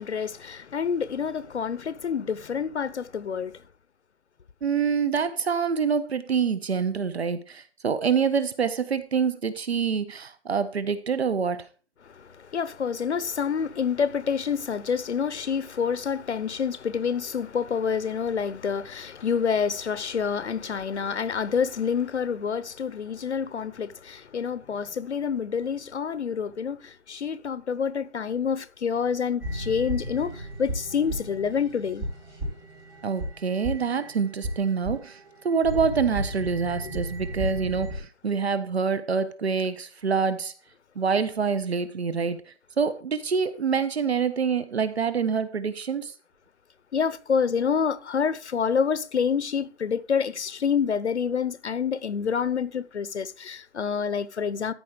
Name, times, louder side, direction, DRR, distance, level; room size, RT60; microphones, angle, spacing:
voice 1, 0.0-3.6 12.0-32.1 46.9-54.7, left 6 dB, 80° left, 0.9 m, -27 dB
voice 2, 4.6-11.7 33.0-35.2 35.4-40.5 41.0-42.4 42.8-46.1, right 6 dB, 65° right, 1.2 m, -26 dB
sound 1, 29.4-38.0, right 1 dB, 10° right, 4.1 m, -34 dB
13.5 x 5.3 x 4.9 m
hypercardioid pair, 170°, 34 cm